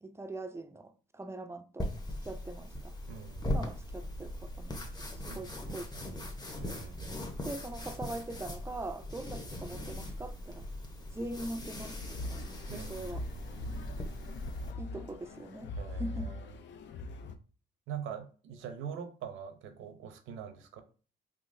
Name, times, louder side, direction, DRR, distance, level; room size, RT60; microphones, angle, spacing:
voice 1, 0.0-1.9 2.2-2.9 3.4-6.2 7.4-10.7 11.1-13.2 14.8-16.4, right 2 dB, 15° right, 0.4 m, -42 dB
sound 1, 1.8-14.7, left 1 dB, 20° left, 0.9 m, -40 dB
voice 2, 3.1-3.6 5.3-6.1 6.6-7.2 12.7-14.2 15.8-16.4 17.9-20.8, right 8 dB, 90° right, 0.7 m, -44 dB
sound 2, 12.0-17.4, left 2 dB, 65° left, 0.5 m, -42 dB
3.7 x 2.9 x 2.6 m
cardioid pair, 90°, 20 cm